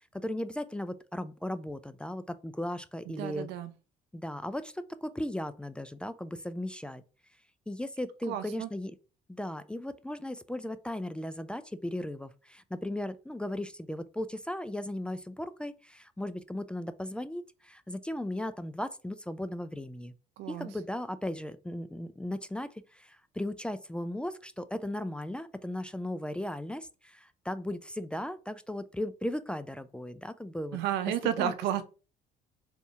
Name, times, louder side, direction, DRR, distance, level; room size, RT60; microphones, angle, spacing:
voice 1, 0.1-3.5 4.1-7.0 7.7-8.9 9.3-20.1 20.5-30.8 31.4-31.5, left 1 dB, 5° left, 0.3 m, -37 dB
voice 2, 3.1-3.7 8.3-8.7 20.4-20.7 30.7-31.8, right 10 dB, 90° right, 0.6 m, -32 dB
3.5 x 2.7 x 4.2 m
cardioid pair, 110°, 17 cm